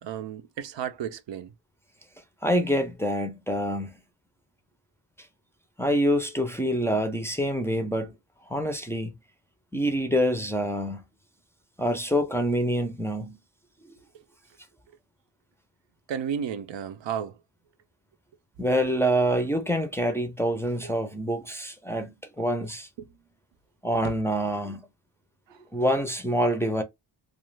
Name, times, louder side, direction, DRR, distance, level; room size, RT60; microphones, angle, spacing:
voice 1, 0.0-1.5 16.1-17.4 20.8-20.9 23.0-23.1 24.0-24.1 25.5-25.6, right 8 dB, 85° right, 0.6 m, -33 dB
voice 2, 2.4-3.9 5.8-8.1 8.5-9.1 9.7-11.0 11.8-13.4 18.6-22.9 23.8-24.8 25.7-26.8, equal, 5° left, 0.4 m, -26 dB
2.4 x 2.4 x 3.1 m
wide cardioid pair, 125°, 43 cm